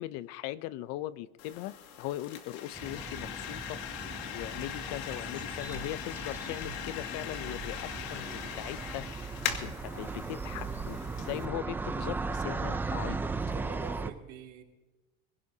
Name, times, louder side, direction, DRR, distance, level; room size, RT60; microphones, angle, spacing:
voice 1, 0.0-3.8 4.3-9.1 9.6-13.3, left 15 dB, 55° left, 0.6 m, -39 dB
sound 1, 1.4-11.5, left 9 dB, 80° left, 2.2 m, -40 dB
sound 2, 2.7-14.1, right 4 dB, 5° right, 0.4 m, -38 dB
sound 3, 5.7-5.9 6.6-6.9 7.6-7.8 9.5-9.8 11.4-11.9, right 1 dB, 40° left, 4.5 m, -46 dB
voice 2, 13.5-14.6, right 8 dB, 50° right, 2.8 m, -44 dB
23.0 x 16.5 x 2.8 m
cardioid pair, 160°, 30 cm